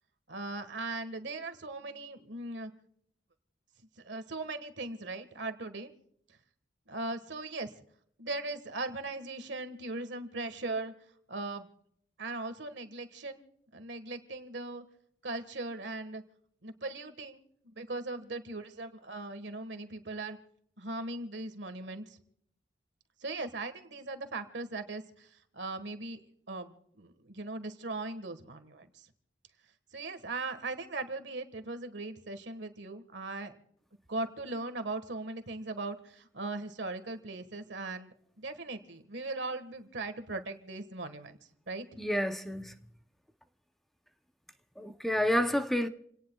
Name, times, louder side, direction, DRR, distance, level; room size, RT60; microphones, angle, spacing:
voice 1, 0.3-2.7 4.0-5.9 6.9-7.7 8.2-10.9 11.3-11.7 12.2-13.4 13.7-14.8 15.2-16.2 16.6-17.4 17.7-20.4 20.8-22.2 23.2-26.2 26.5-29.1 29.9-33.5 34.1-41.4 41.7-41.8, right 2 dB, 90° right, 1.6 m, -39 dB
voice 2, 42.0-42.7 44.8-45.9, equal, ahead, 0.7 m, -29 dB
28.5 x 18.0 x 2.3 m
head